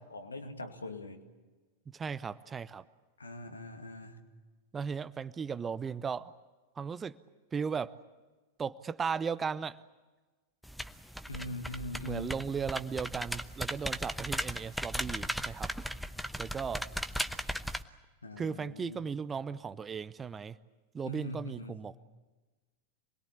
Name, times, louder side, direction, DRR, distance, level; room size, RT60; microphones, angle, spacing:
voice 1, 0.1-1.2 3.2-4.3 11.3-12.4 18.2-19.1 21.1-21.8, left 1 dB, 75° left, 6 dB, 2.3 m, -42 dB
voice 2, 1.9-2.8 4.7-6.3 6.8-7.2 7.5-8.0 8.6-9.8 12.0-15.7 16.4-16.9 18.4-20.6 20.9-22.0, right 6 dB, 20° right, 15 dB, 0.7 m, -36 dB
sound 1, 10.6-17.8, equal, ahead, 0.9 m, -37 dB
27.5 x 21.5 x 8.5 m, 1.3 s
figure-of-eight pair, 90°, 0 cm